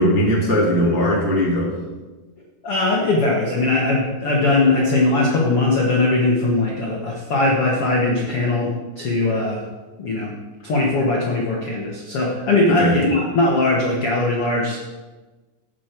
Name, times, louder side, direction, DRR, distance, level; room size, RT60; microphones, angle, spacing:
voice 1, 0.0-1.7 12.7-12.9, equal, 5° right, -4 dB, 1.4 m, -18 dB
voice 2, 2.6-9.6 10.0-10.3 10.6-14.8, left 2 dB, 55° left, -3 dB, 1.6 m, -20 dB
14.5 x 8.4 x 4.6 m, 1.2 s
omnidirectional pair, 4.9 m